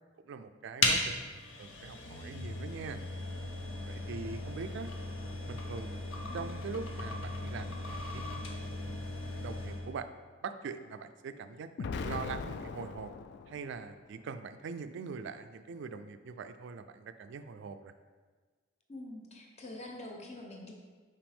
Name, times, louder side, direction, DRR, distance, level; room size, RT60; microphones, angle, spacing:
voice 1, 0.2-1.1 1.6-3.0 3.9-4.9 5.5-6.0 6.3-8.2 8.8-9.0 9.4-10.1 10.4-13.1 13.5-17.9, right 5 dB, 65° right, 10 dB, 0.3 m, -42 dB
sound 1, 0.8-9.9, left 2 dB, 75° left, 0.8 m, -36 dB
Explosion, 11.8-13.9, left 4 dB, 60° left, 0.3 m, -39 dB
voice 2, 18.9-20.7, left 1 dB, 35° left, 1 dB, 0.8 m, -45 dB
5.9 x 4.6 x 3.5 m, 1.4 s
head